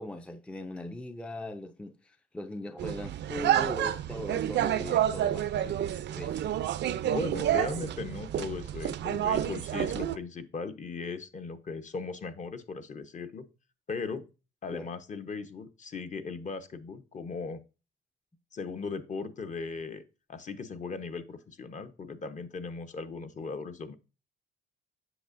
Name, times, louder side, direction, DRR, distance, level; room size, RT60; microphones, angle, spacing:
voice 1, 0.0-6.6 14.7-14.9, left 1 dB, 5° left, 0.5 m, -40 dB
sound 1, 2.8-10.2, right 11 dB, 60° right, 0.5 m, -29 dB
voice 2, 7.0-13.5 13.9-14.3 14.6-17.6 18.5-20.0 20.3-23.9, left 4 dB, 40° left, 0.8 m, -38 dB
7.8 x 6.4 x 2.5 m
cardioid pair, 90°, 20 cm